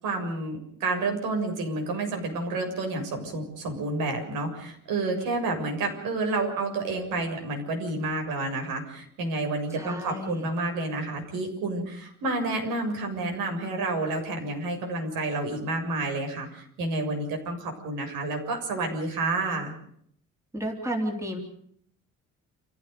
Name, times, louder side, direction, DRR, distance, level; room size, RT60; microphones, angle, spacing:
voice 1, 0.0-19.7, right 2 dB, 80° right, 3 dB, 7.2 m, -30 dB
voice 2, 9.7-10.5 20.5-21.4, equal, 10° right, 2 dB, 3.4 m, -32 dB
28.5 x 16.0 x 6.8 m, 0.65 s
cardioid pair, 175°, 32 cm